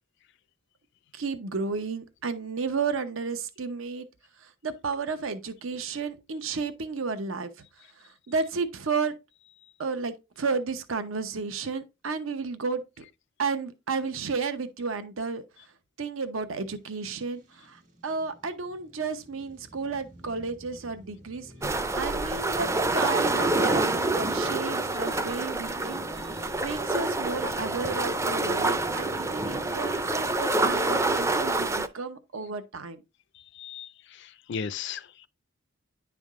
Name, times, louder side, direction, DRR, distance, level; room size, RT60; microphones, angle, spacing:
voice 1, 1.1-4.1 4.4-7.5 8.0-9.1 9.8-13.0 13.4-15.4 16.0-21.5 22.0-26.0 26.3-33.0, right 4 dB, 80° right, 0.8 m, -32 dB
sound 1, 17.1-30.4, equal, 40° right, 1.4 m, -47 dB
sound 2, 21.6-31.9, right 2 dB, 15° right, 0.4 m, -27 dB
voice 2, 33.6-33.9 34.5-35.3, left 6 dB, 60° left, 0.4 m, -35 dB
10.0 x 3.5 x 3.6 m
head